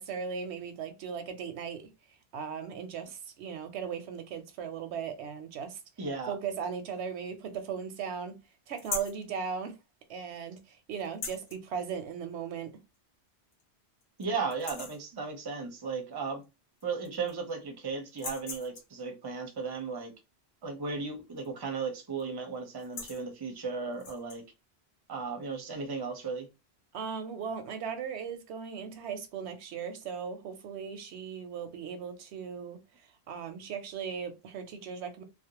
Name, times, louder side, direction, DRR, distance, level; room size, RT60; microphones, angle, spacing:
voice 1, 0.0-1.8 2.3-5.8 6.3-8.4 8.7-9.8 10.1-12.7 26.9-32.8 33.3-35.2, right 6 dB, 85° right, 0.9 m, -37 dB
voice 2, 6.0-6.4 14.2-16.5 16.8-20.1 20.6-24.4 25.1-26.5, right 4 dB, 30° right, 0.5 m, -35 dB
sound 1, 8.8-9.2 11.0-11.6 12.9-13.0 13.5-13.6 14.0-14.2 14.5-15.1 16.4-16.5 16.8-17.5 18.1-19.0 21.4-21.7 21.9-22.2 22.7-23.2 23.9-24.4, left 4 dB, 50° left, 0.6 m, -40 dB
2.4 x 2.0 x 2.8 m
omnidirectional pair, 1.1 m